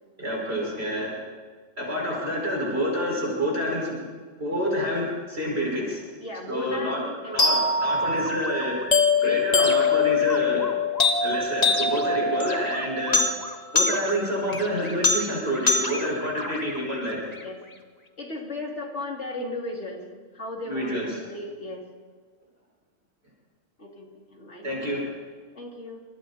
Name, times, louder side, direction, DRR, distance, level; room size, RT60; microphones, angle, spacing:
voice 1, 0.2-1.2 1.8-4.0 4.4-6.0 6.5-7.0 7.3-8.8 9.2-10.7 11.2-13.3 13.7-17.2 20.7-21.2 24.6-25.1, equal, 60° right, -3 dB, 5.9 m, -28 dB
voice 2, 6.2-7.4 9.2-9.9 17.4-17.6 18.2-20.0 20.3-21.9 23.8-24.8 25.5-26.0, left 2 dB, 70° left, 0 dB, 3.3 m, -36 dB
sound 1, 7.4-17.4, left 3 dB, 35° left, 1.6 m, -24 dB
28.0 x 25.5 x 4.3 m, 1.5 s
omnidirectional pair, 1.2 m